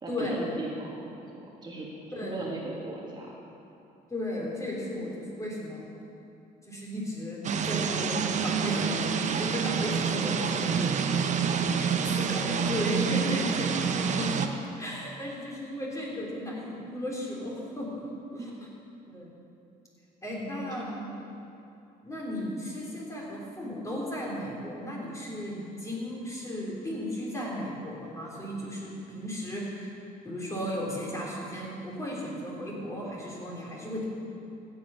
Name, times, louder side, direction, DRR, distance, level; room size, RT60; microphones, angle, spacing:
voice 1, 0.0-1.2 1.6-1.9 2.2-3.4 18.4-18.6 20.3-21.1, right 2 dB, 25° right, -3 dB, 1.6 m, -38 dB
voice 2, 2.1-2.4 4.1-5.9 6.7-11.0 12.2-14.5 14.8-18.0 18.3-18.4 19.1-19.3 20.2-20.8 22.0-29.9 30.2-34.1, left 1 dB, 20° left, -3 dB, 3.6 m, -35 dB
sound 1, 7.4-14.5, right 6 dB, 45° right, 0.8 m, -27 dB
15.0 x 8.6 x 5.7 m, 2.7 s
cardioid pair, 110°, 17 cm